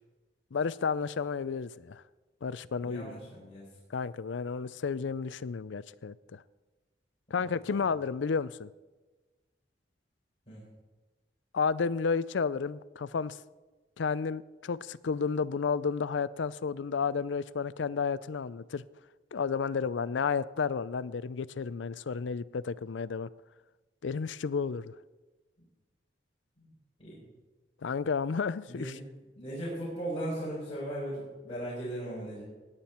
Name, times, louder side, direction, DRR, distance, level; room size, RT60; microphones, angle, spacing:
voice 1, 0.5-2.0 2.4-3.2 3.9-6.4 7.3-8.7 11.5-13.4 14.0-18.8 19.3-23.3 24.0-24.9 27.8-28.9, left 5 dB, 85° left, 0.5 m, -32 dB
voice 2, 2.8-3.7 7.4-7.9 10.5-10.6 26.6-26.7 27.0-27.2 28.7-29.0 29.4-32.4, right 1 dB, 35° left, 4.3 m, -38 dB
18.5 x 9.0 x 4.4 m
head